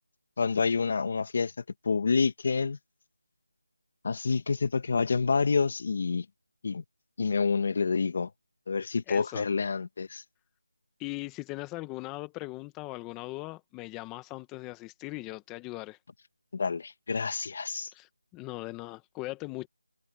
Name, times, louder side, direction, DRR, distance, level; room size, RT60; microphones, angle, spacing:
voice 1, 0.4-1.5 1.8-2.8 4.0-6.3 6.6-6.8 7.2-8.3 8.7-10.2 16.5-17.9, left 5 dB, 40° left, 1.9 m, -28 dB
voice 2, 9.1-9.4 11.0-16.0 17.9-19.7, left 21 dB, 10° left, 1.4 m, -39 dB
figure-of-eight pair, 170°, 0 cm